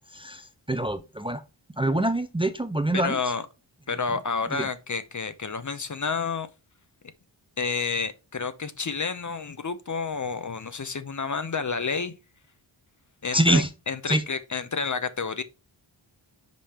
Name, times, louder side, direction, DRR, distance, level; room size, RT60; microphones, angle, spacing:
voice 1, 0.1-1.4 1.8-3.2 4.5-4.7 13.3-13.7 14.1-14.2, right 1 dB, 10° right, 0.6 m, -25 dB
voice 2, 2.9-3.5 3.9-6.5 7.6-12.1 13.2-15.4, left 5 dB, 40° left, 0.7 m, -30 dB
5.3 x 5.1 x 4.3 m
wide cardioid pair, 80°, 48 cm